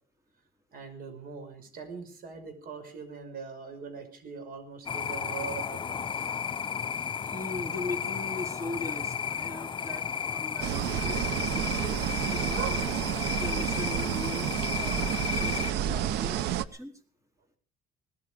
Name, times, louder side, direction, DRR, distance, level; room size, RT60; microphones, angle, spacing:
voice 1, 0.7-6.3, right 5 dB, 60° right, 8 dB, 5.9 m, -42 dB
sound 1, 4.9-15.7, left 7 dB, 30° left, 0.8 m, -33 dB
voice 2, 7.2-12.9 13.3-16.9, left 2 dB, 20° right, 4 dB, 4.4 m, -40 dB
sound 2, 10.6-16.7, right 10 dB, 85° right, 0.9 m, -30 dB
19.5 x 14.0 x 5.2 m, 0.42 s
cardioid pair, 110°, 17 cm